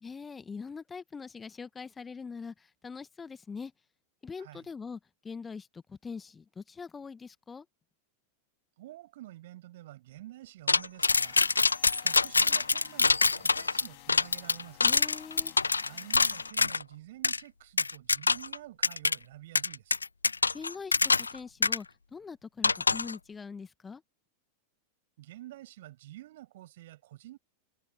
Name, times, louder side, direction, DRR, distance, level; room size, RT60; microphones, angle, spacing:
voice 1, 0.0-2.5 2.8-3.7 4.2-5.0 5.2-7.6 14.8-15.5 20.5-21.9 22.1-24.0, left 5 dB, 15° left, 1.6 m, -42 dB
voice 2, 8.8-11.4 12.0-15.0 15.8-20.0 25.2-27.4, right 15 dB, 55° right, 6.9 m, -49 dB
sound 1, 10.7-16.8 17.2-17.4 17.8-18.6 18.8-19.2 19.6-21.4 21.6-21.8 22.6-23.1, left 4 dB, 80° left, 0.4 m, -25 dB
sound 2, 11.0-16.5, left 40 dB or more, 45° left, 2.9 m, -53 dB
figure-of-eight pair, 90°, 0 cm